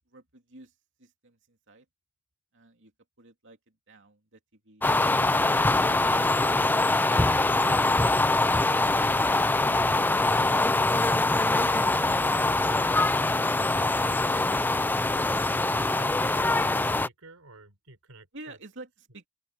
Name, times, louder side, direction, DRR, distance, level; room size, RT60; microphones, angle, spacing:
voice 1, 0.1-1.9 2.5-2.9 3.2-5.5 18.3-19.3, right 2 dB, 55° right, 3.0 m, -52 dB
sound 1, 4.8-17.1, left 2 dB, 10° left, 0.4 m, -23 dB
voice 2, 13.7-18.6, right 3 dB, 80° right, 4.0 m, -50 dB
open air
head